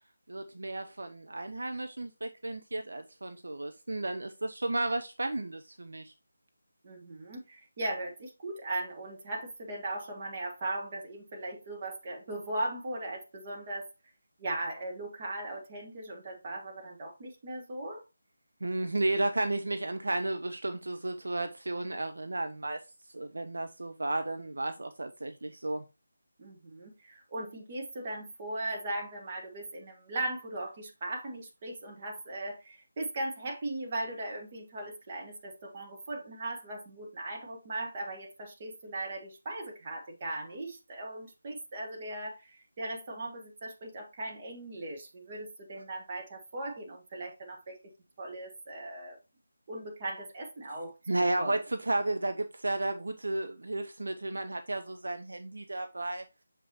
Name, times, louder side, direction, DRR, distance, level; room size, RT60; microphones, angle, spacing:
voice 1, 0.3-6.1 18.6-22.8 23.1-25.8 51.1-56.2, right 2 dB, 60° right, 0.6 m, -33 dB
voice 2, 6.8-13.9 14.4-18.0 26.4-47.8 48.2-49.2 49.7-50.9 51.4-51.5, right 2 dB, 25° right, 1.5 m, -38 dB
6.8 x 5.5 x 2.9 m
figure-of-eight pair, 155°, 0 cm